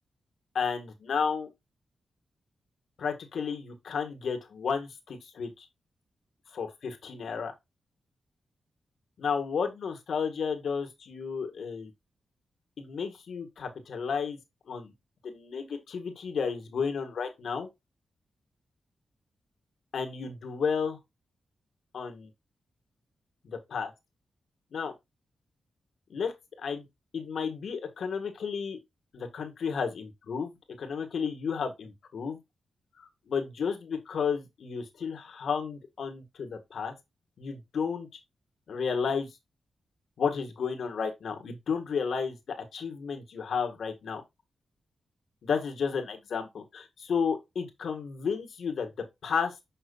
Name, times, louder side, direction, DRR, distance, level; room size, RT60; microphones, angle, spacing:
voice 1, 0.5-1.5 3.0-5.6 6.5-7.5 9.2-11.9 12.8-14.4 14.7-14.9 15.2-17.7 19.9-21.0 21.9-22.3 23.4-23.9 24.7-24.9 26.1-26.8 27.1-28.8 29.1-32.4 32.9-36.9 37.4-38.1 38.7-39.3 40.2-44.2 45.4-48.9 49.2-49.5, left 6 dB, 75° left, 1.7 m, -32 dB
7.0 x 5.5 x 2.4 m
cardioid pair, 95°, 0 cm